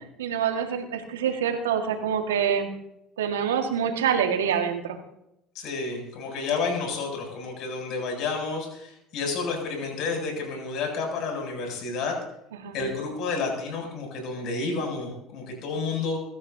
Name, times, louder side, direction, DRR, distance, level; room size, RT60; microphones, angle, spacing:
voice 1, 0.2-2.7 3.2-5.0 12.5-12.8, right 8 dB, 90° right, 4 dB, 1.8 m, -26 dB
voice 2, 5.5-12.2 12.7-16.2, left 4 dB, 60° left, 2 dB, 7.8 m, -30 dB
24.5 x 14.5 x 2.8 m, 0.83 s
hypercardioid pair, 70°, 0 cm